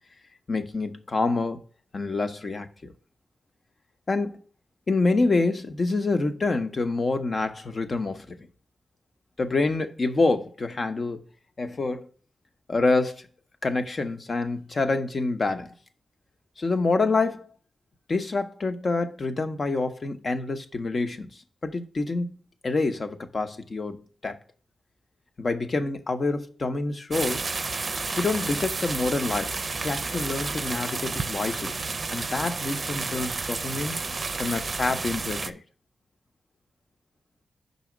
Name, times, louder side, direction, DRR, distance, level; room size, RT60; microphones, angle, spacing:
voice 1, 0.5-1.6 1.9-2.9 4.1-4.4 4.9-8.5 9.4-11.2 11.6-12.1 12.7-13.2 13.6-15.7 16.6-17.5 18.1-21.3 21.6-22.4 22.6-24.4 25.4-27.4 28.2-29.5 29.8-31.8 32.1-33.9 34.4-35.6, left 3 dB, 55° left, 0.9 m, -27 dB
sound 1, 27.1-35.5, right 4 dB, 50° right, 0.5 m, -31 dB
5.5 x 4.1 x 6.2 m
supercardioid pair, 45°, 0 cm